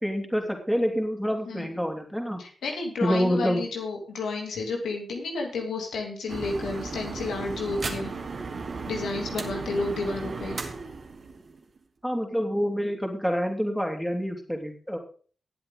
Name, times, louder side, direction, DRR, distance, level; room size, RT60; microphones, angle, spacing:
voice 1, 0.0-2.4 3.0-3.6 12.0-15.0, equal, ahead, 3 dB, 3.2 m, -27 dB
voice 2, 2.4-8.1 8.8-10.6, left 3 dB, 85° left, 1 dB, 2.7 m, -31 dB
sound 1, 6.3-11.8, right 4 dB, 55° right, 2.1 m, -35 dB
17.5 x 7.8 x 3.8 m, 0.41 s
supercardioid pair, 45°, 0 cm